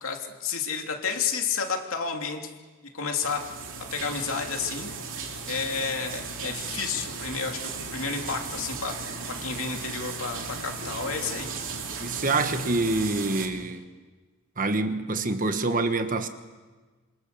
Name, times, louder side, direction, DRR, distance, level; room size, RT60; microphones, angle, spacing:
voice 1, 0.0-2.5 2.9-3.4 3.8-4.9 5.5-11.5, left 5 dB, 65° left, 3 dB, 3.0 m, -31 dB
sound 1, 3.2-13.5, right 4 dB, 60° right, 3.1 m, -36 dB
voice 2, 12.0-13.9 14.6-16.3, right 2 dB, 35° right, 8 dB, 1.4 m, -26 dB
27.0 x 26.0 x 6.9 m, 1.3 s
head